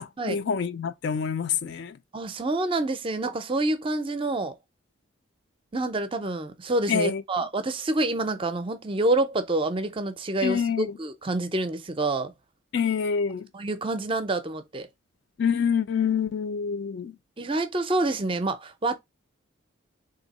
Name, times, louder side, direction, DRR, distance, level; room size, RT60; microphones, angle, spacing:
voice 1, 0.0-2.0 6.9-7.2 10.4-11.0 12.7-13.5 15.4-17.2, left 6 dB, 55° left, 0.3 m, -26 dB
voice 2, 2.1-4.5 5.7-12.3 13.5-14.9 17.4-19.0, right 2 dB, 25° right, 0.5 m, -27 dB
3.4 x 2.7 x 4.0 m
head